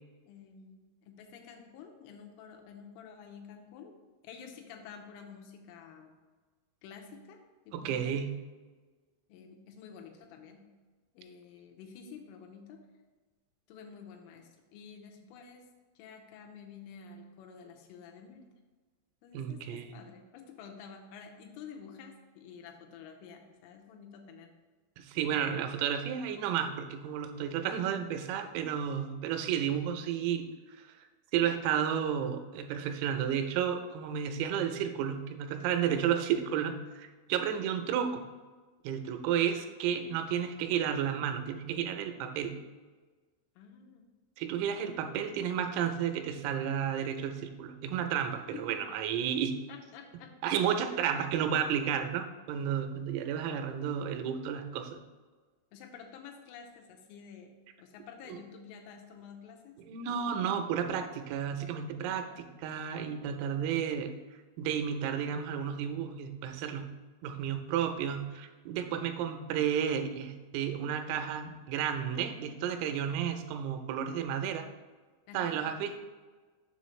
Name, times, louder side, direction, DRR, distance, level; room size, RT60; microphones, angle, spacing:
voice 1, 0.3-3.9 4.2-6.1 6.8-8.2 9.3-10.7 11.1-12.9 13.7-15.7 16.0-18.5 19.2-24.5 37.7-38.0 43.6-44.1 48.5-49.0 49.7-50.8 55.7-59.8 60.1-60.5 62.3-62.5 75.3-75.7, left 6 dB, 85° left, 3 dB, 3.3 m, -50 dB
voice 2, 7.7-8.4 19.3-19.9 25.0-30.5 30.8-30.9 31.3-38.2 38.8-42.6 44.4-49.6 50.4-55.0 58.3-58.4 59.8-64.1 64.6-66.9 67.2-74.7 75.3-76.0, right 8 dB, 85° right, 6 dB, 3.3 m, -32 dB
7.4 x 6.3 x 3.1 m, 1.4 s
omnidirectional pair, 5.8 m